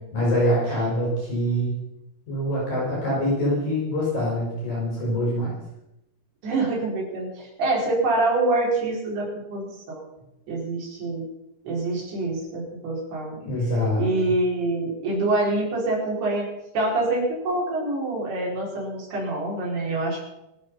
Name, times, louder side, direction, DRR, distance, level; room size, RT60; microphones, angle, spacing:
voice 1, 0.1-1.7 2.3-5.6 13.4-14.1, equal, 55° left, -5 dB, 7.4 m, -24 dB
voice 2, 6.4-10.0 10.5-11.2 11.7-13.4 14.0-16.5 16.7-20.2, right 2 dB, 75° right, -3 dB, 7.1 m, -25 dB
26.0 x 9.0 x 5.7 m, 0.89 s
omnidirectional pair, 4.6 m